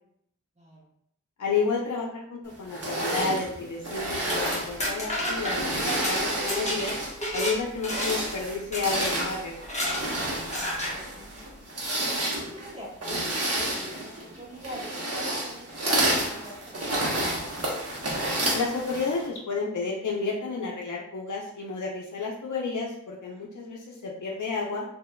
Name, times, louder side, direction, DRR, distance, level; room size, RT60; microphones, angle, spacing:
voice 1, 0.5-0.9 10.6-11.4 12.0-17.3, equal, 20° right, -7 dB, 1.4 m, -44 dB
voice 2, 1.4-6.9 7.3-9.5 18.5-24.8, left 4 dB, 75° left, -2 dB, 0.5 m, -31 dB
sound 1, 2.7-7.3 7.7-19.3, right 1 dB, 50° right, 0.9 m, -30 dB
sound 2, 4.1-7.6 7.8-8.3 8.7-9.1 9.6-10.0 10.5-10.9, equal, 20° left, 1.1 m, -31 dB
3.5 x 2.8 x 2.2 m, 0.69 s
wide cardioid pair, 45°, 31 cm